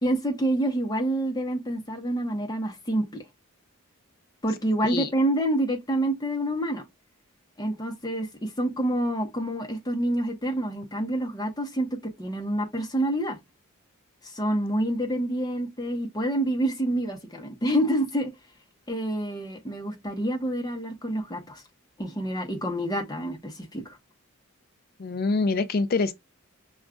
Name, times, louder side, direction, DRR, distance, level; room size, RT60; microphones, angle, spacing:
voice 1, 0.0-3.2 4.4-6.8 7.6-13.4 14.2-18.3 18.9-21.6 22.0-24.0, right 1 dB, 20° left, 0.8 m, -27 dB
voice 2, 25.0-26.1, left 3 dB, 45° left, 0.4 m, -25 dB
6.1 x 2.4 x 2.3 m
head